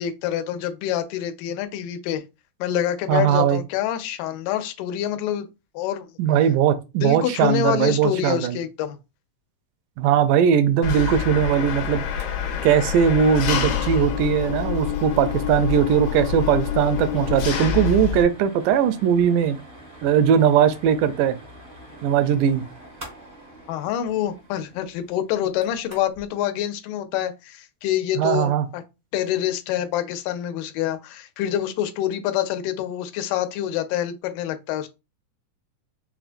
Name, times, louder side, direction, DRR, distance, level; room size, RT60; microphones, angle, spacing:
voice 1, 0.0-2.2 2.6-5.5 5.7-6.1 7.0-9.0 23.7-28.8 29.1-34.9, left 11 dB, 90° left, 2.1 m, -26 dB
voice 2, 3.1-3.6 6.2-8.6 10.0-12.1 12.6-19.6 20.0-21.4 22.0-22.6 28.2-28.7, right 8 dB, 85° right, 2.1 m, -19 dB
Engine, 10.8-18.2, left 9 dB, 75° left, 2.0 m, -26 dB
sound 1, 12.2-12.3 12.6-12.7 13.0-13.2 13.6-26.3, right 1 dB, 45° right, 0.7 m, -45 dB
5.6 x 2.3 x 2.5 m
omnidirectional pair, 3.7 m